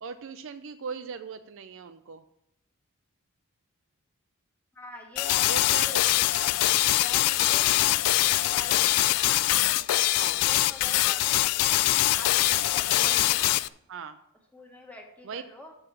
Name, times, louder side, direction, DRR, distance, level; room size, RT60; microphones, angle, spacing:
voice 1, 0.0-2.2 5.5-6.0 7.8-8.0 10.2-10.4 13.0-13.3 13.9-14.2 15.2-15.4, right 5 dB, 60° right, 10 dB, 0.4 m, -39 dB
voice 2, 4.7-6.6 6.9-11.8 12.1-13.6 14.5-15.8, left 2 dB, 5° left, 0 dB, 1.6 m, -46 dB
sound 1, 5.2-13.7, left 16 dB, 90° left, 0.3 m, -23 dB
7.2 x 6.8 x 6.3 m, 0.78 s
head